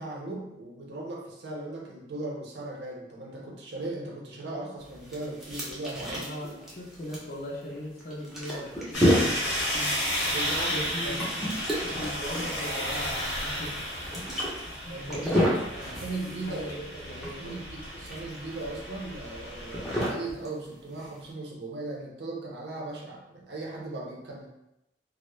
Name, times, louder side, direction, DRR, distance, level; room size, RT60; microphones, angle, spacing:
voice 1, 0.0-6.4 10.2-11.3 14.9-15.4 16.0-16.7 17.4-24.5, right 2 dB, 75° right, -2 dB, 0.6 m, -38 dB
sound 1, 4.8-21.3, equal, ahead, 0.5 m, -32 dB
voice 2, 6.2-10.0 10.7-11.4 11.8-13.8 14.5-16.2 16.5-17.6, equal, 55° left, -2 dB, 0.5 m, -39 dB
sound 2, 8.9-20.1, equal, 75° left, 0.9 m, -33 dB
2.3 x 2.0 x 3.0 m, 0.88 s
head